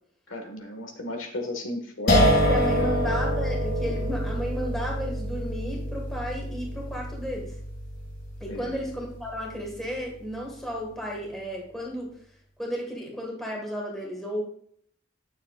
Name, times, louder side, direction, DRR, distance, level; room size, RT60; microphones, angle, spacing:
voice 1, 0.3-2.8 8.5-8.7, left 1 dB, 85° left, 4 dB, 1.4 m, -35 dB
sound 1, 2.1-9.0, equal, 50° left, 2.3 m, -26 dB
voice 2, 2.3-7.5 8.4-12.1 12.6-14.4, equal, ahead, -1 dB, 1.6 m, -33 dB
9.4 x 6.8 x 2.4 m, 0.63 s
head